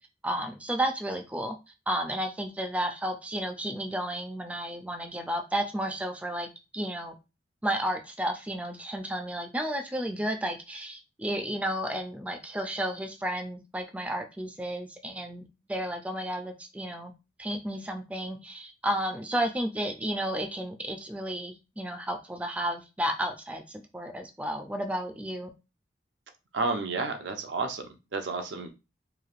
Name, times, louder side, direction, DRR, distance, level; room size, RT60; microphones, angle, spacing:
voice 1, 0.2-1.6 1.9-6.5 6.7-7.1 7.6-17.1 17.4-25.5, right 1 dB, 10° right, 4 dB, 0.3 m, -32 dB
voice 2, 26.5-28.7, right 3 dB, 80° right, 5 dB, 0.5 m, -31 dB
3.1 x 2.5 x 2.4 m, 0.27 s
head